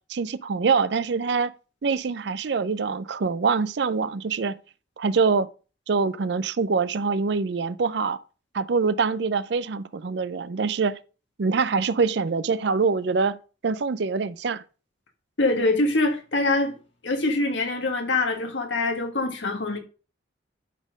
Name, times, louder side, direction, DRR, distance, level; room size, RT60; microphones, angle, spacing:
voice 1, 0.1-1.5 1.8-4.5 5.0-5.5 5.9-8.2 8.5-11.0 11.4-13.4 13.6-14.6, right 4 dB, 65° right, 0.5 m, -24 dB
voice 2, 15.4-16.7 17.0-19.8, left 2 dB, 80° left, 1.7 m, -24 dB
11.5 x 4.2 x 5.1 m
head